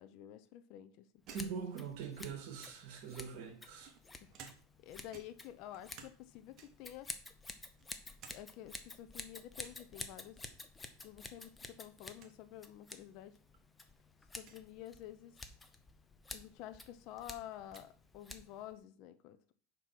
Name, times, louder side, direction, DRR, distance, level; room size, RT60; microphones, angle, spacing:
voice 1, 0.0-1.2 4.2-4.3 4.8-7.1 8.3-10.4 11.0-13.3 14.3-15.4 16.3-19.5, left 12 dB, 55° left, 10 dB, 0.7 m, -50 dB
Scissors, 1.3-18.8, left 3 dB, 15° left, 0.8 m, -51 dB
sound 1, 1.3-2.4 3.2-4.9 5.1-6.2 6.6-7.0 7.4-8.4 8.7-8.8 9.6-9.9 11.3-11.6 11.9-12.0 12.2-12.4 13.2-13.3 14.4-14.6 16.3-16.4 16.7-17.9, right 6 dB, 40° right, 1.3 m, -58 dB
voice 2, 1.3-3.9, right 6 dB, 60° right, 4 dB, 2.3 m, -43 dB
5.2 x 4.8 x 5.9 m, 0.43 s
supercardioid pair, 130°, 0 cm